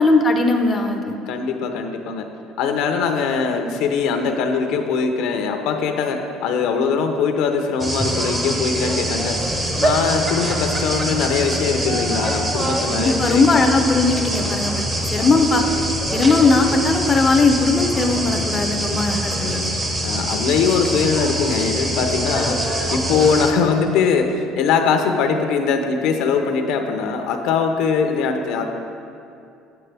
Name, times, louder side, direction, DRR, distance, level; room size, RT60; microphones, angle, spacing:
voice 1, 0.0-1.1 12.9-14.8 15.1-15.6 16.1-19.7, left 3 dB, 20° left, 4 dB, 0.5 m, -18 dB
voice 2, 1.3-2.3 2.6-9.4 9.8-13.4 20.0-28.7, left 5 dB, 70° left, 5 dB, 0.6 m, -21 dB
sound 1, 7.8-23.5, right 1 dB, 15° right, 0.8 m, -24 dB
8.1 x 7.8 x 3.4 m, 2.6 s
cardioid pair, 135°, 0 cm